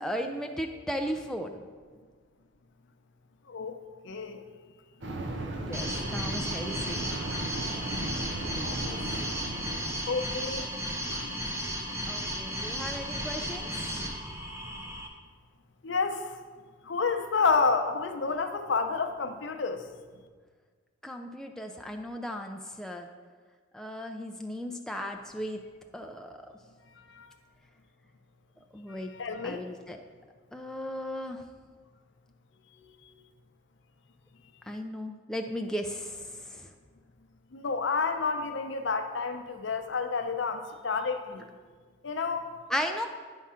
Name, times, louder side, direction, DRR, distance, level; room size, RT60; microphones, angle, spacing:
voice 1, 0.0-1.6 5.6-7.0 12.1-13.7 21.0-23.1 23.7-25.6 25.9-26.4 28.7-29.1 29.4-30.0 30.5-31.4 34.7-36.2 36.5-36.7 42.7-43.1, equal, 5° left, 3 dB, 0.3 m, -36 dB
voice 2, 4.0-4.4 8.6-9.2 10.1-10.7 11.1-11.3 15.8-16.4 16.8-19.8 27.0-27.3 28.9-29.6 32.8-32.9 37.5-41.5 42.0-42.5, left 4 dB, 70° left, 7 dB, 0.6 m, -30 dB
sound 1, 5.0-10.4, right 1 dB, 65° right, 0.8 m, -36 dB
sound 2, 5.7-15.1, equal, 15° right, 0.8 m, -34 dB
9.7 x 3.6 x 5.6 m, 1.5 s
head